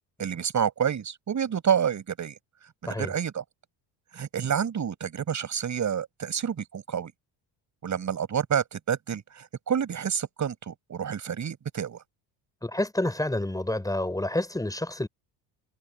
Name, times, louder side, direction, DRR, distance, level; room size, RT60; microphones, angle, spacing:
voice 1, 0.2-2.4 2.8-3.4 4.1-7.1 7.8-12.0, right 8 dB, 40° right, 7.0 m, -29 dB
voice 2, 12.6-15.1, left 1 dB, 10° left, 6.6 m, -28 dB
cardioid pair, 115°, 45 cm